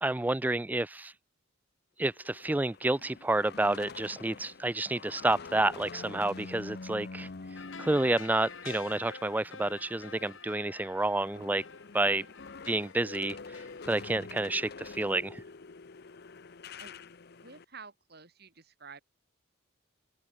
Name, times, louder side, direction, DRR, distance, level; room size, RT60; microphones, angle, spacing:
voice 1, 0.0-1.1 2.0-7.3 7.8-11.6 11.9-12.2 12.7-13.4 13.9-15.4, right 2 dB, 10° right, 0.3 m, -29 dB
sound 1, 2.1-10.5 10.8-17.6, left 4 dB, 50° left, 0.7 m, -47 dB
sound 2, 7.6-15.2 15.5-15.6, left 5 dB, 75° left, 3.6 m, -49 dB
voice 2, 16.8-19.0, right 5 dB, 50° right, 5.7 m, -51 dB
open air
head